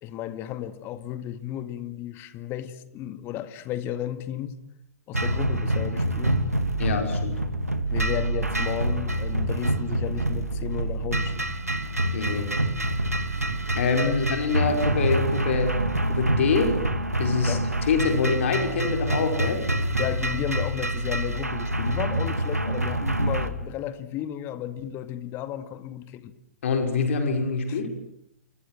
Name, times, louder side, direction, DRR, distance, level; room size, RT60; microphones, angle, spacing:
voice 1, 0.0-4.6 5.1-6.4 7.9-11.6 14.0-14.1 17.5-17.6 20.0-26.3 27.7-27.8, left 11 dB, 30° left, 2.2 m, -33 dB
sound 1, 5.1-23.5, right 1 dB, 85° right, 2.5 m, -26 dB
voice 2, 6.8-7.4 12.1-12.5 13.7-16.8 17.2-19.7 26.6-28.1, left 4 dB, 55° left, 5.7 m, -25 dB
29.0 x 25.0 x 7.7 m
figure-of-eight pair, 110°, 8 cm